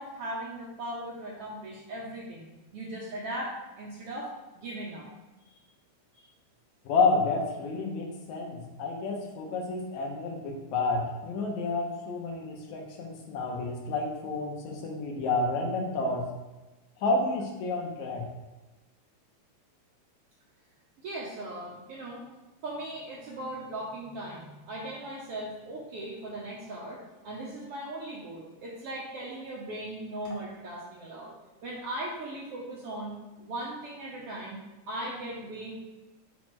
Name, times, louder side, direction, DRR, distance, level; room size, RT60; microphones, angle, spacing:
voice 1, 0.0-4.3 4.5-5.1 6.2-6.3 21.0-22.2 22.6-31.3 31.6-34.6 34.9-35.8, right 1 dB, 65° right, -4 dB, 1.5 m, -38 dB
voice 2, 6.9-16.2 17.0-18.3, left 3 dB, 75° left, 1 dB, 2.2 m, -30 dB
6.1 x 4.9 x 3.1 m, 1.1 s
omnidirectional pair, 3.4 m